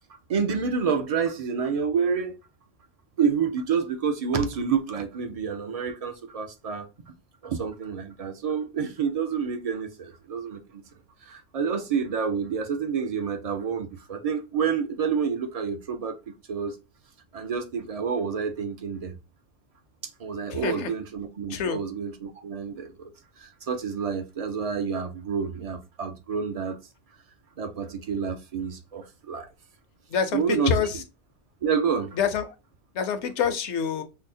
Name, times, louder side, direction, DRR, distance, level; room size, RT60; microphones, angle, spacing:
voice 1, 0.1-2.4 3.2-6.9 7.4-10.8 11.2-16.2 16.5-16.8 17.3-19.2 20.2-23.1 23.4-26.8 27.6-29.5 30.3-30.7 31.6-32.2, right 6 dB, 60° right, 0.4 m, -28 dB
voice 2, 20.5-20.9 21.5-21.8 30.1-31.0 32.1-32.6 32.9-34.0, left 6 dB, 75° left, 0.9 m, -26 dB
5.4 x 2.0 x 2.6 m
omnidirectional pair, 1.2 m